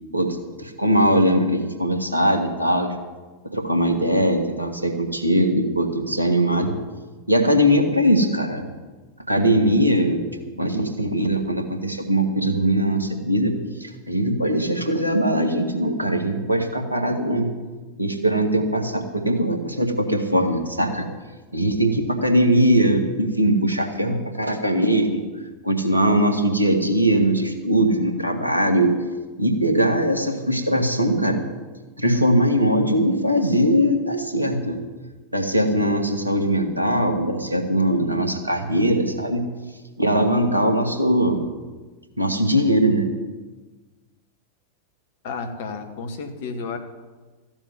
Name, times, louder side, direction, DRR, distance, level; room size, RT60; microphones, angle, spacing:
voice 1, 0.1-2.9 3.5-6.7 7.3-8.6 9.3-10.2 10.6-13.5 13.8-17.5 18.0-21.1 21.5-25.2 25.6-29.0 29.4-31.4 32.0-34.8 35.3-39.4 40.0-41.4 42.2-43.1, right 1 dB, 85° right, 5 dB, 1.8 m, -21 dB
voice 2, 45.2-46.8, left 4 dB, 55° left, 6 dB, 1.8 m, -31 dB
14.5 x 7.3 x 9.4 m, 1.3 s
figure-of-eight pair, 90°, 0 cm